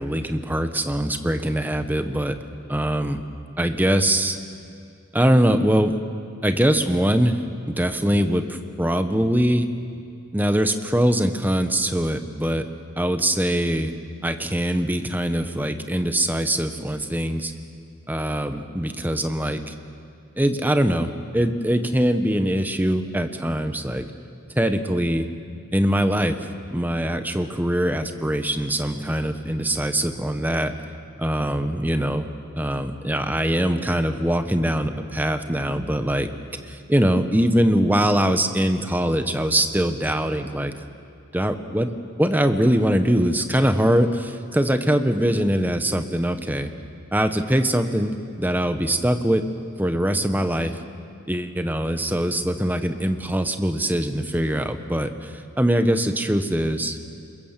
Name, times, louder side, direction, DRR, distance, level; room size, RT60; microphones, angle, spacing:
voice 1, 0.0-2.4 2.7-3.2 3.6-4.4 5.1-5.9 6.4-9.7 10.3-12.6 13.0-13.9 14.2-17.5 18.1-19.7 20.4-24.0 24.6-25.3 25.7-26.4 26.7-30.7 31.2-32.3 32.5-36.3 36.7-40.7 41.3-41.9 42.2-46.7 47.1-49.4 49.8-50.8 51.3-57.0, right 1 dB, 10° right, 8 dB, 1.1 m, -22 dB
27.5 x 22.0 x 7.4 m, 2.4 s
head